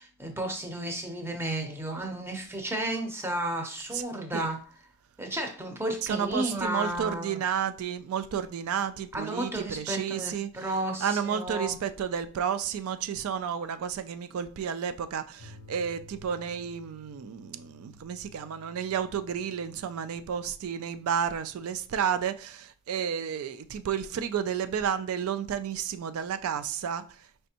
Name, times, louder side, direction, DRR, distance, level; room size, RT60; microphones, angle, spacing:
voice 1, 0.0-4.6 5.2-7.4 9.1-11.8, right 1 dB, 10° right, 0.6 m, -33 dB
voice 2, 6.0-10.7 11.0-27.3, right 8 dB, 75° right, 0.3 m, -31 dB
sound 1, 15.4-22.3, left 2 dB, 45° left, 0.5 m, -54 dB
5.1 x 3.3 x 2.8 m
head